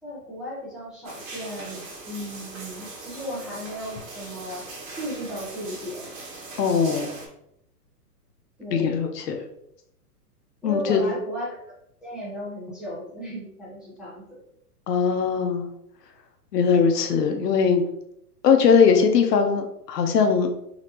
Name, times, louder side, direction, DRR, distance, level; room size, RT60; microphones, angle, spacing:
voice 1, 0.0-4.7 4.9-6.1 8.6-9.0 10.6-11.5 12.0-14.4, equal, ahead, -9 dB, 0.8 m, -35 dB
sound 1, 1.0-7.3, right 3 dB, 55° right, 1.4 m, -40 dB
voice 2, 6.6-7.1 8.7-9.4 10.6-11.0 14.9-15.6 16.5-17.8 18.4-20.5, left 6 dB, 80° left, 5 dB, 0.9 m, -20 dB
4.1 x 3.0 x 3.0 m, 0.76 s
hypercardioid pair, 155°, 47 cm